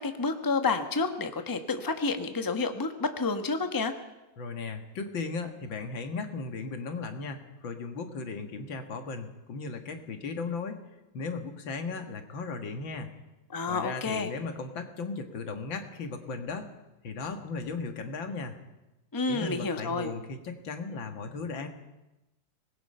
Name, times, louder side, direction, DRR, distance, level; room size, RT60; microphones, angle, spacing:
voice 1, 0.0-3.9 13.5-14.3 19.1-20.1, left 4 dB, 15° left, 7 dB, 1.1 m, -29 dB
voice 2, 4.4-10.8 11.1-13.1 13.7-16.7 17.0-18.6 19.3-21.7, left 4 dB, 85° left, 6 dB, 2.5 m, -36 dB
24.0 x 20.0 x 5.6 m, 1.0 s
omnidirectional pair, 2.0 m